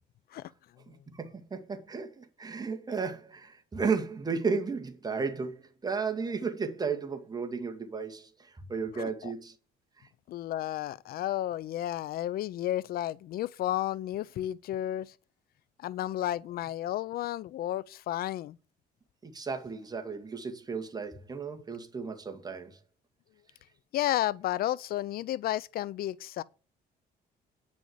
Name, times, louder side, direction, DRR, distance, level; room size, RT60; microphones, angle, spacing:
voice 1, 0.9-9.5 19.2-22.8, right 5 dB, 25° right, 2.1 m, -34 dB
voice 2, 8.9-9.3 10.3-15.1 15.8-18.6 23.9-26.4, left 13 dB, 65° left, 0.5 m, -32 dB
9.7 x 6.3 x 8.1 m
cardioid pair, 110°, 17 cm